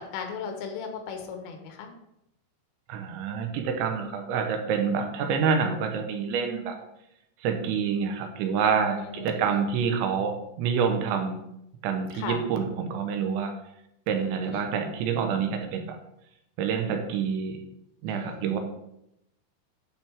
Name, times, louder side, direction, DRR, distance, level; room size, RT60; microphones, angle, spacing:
voice 1, 0.1-1.9 9.1-9.6 12.2-12.4 14.4-14.7 18.0-18.6, left 6 dB, 90° left, 4 dB, 3.7 m, -37 dB
voice 2, 2.9-6.8 7.4-11.4 11.8-13.5 14.1-16.0 16.6-17.6 18.0-18.6, right 6 dB, 80° right, 5 dB, 3.0 m, -27 dB
10.5 x 5.5 x 3.4 m, 0.81 s
omnidirectional pair, 5.5 m